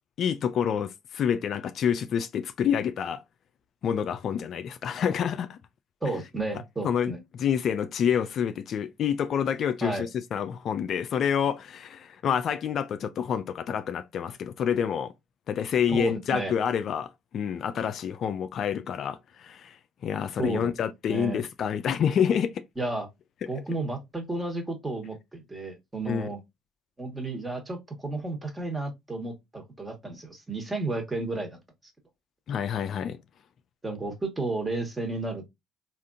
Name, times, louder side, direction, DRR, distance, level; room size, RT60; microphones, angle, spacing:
voice 1, 0.2-3.2 3.8-5.6 6.8-7.1 7.4-15.1 15.5-19.8 20.0-22.6 26.1-26.3 32.5-33.2, left 8 dB, 55° left, 0.3 m, -28 dB
voice 2, 6.0-7.2 9.8-10.0 15.9-16.5 20.4-20.7 21.1-21.4 22.8-23.1 23.5-26.4 27.0-31.6 33.8-35.5, right 2 dB, 15° right, 1.3 m, -32 dB
3.5 x 2.5 x 2.4 m
hypercardioid pair, 60°, 0 cm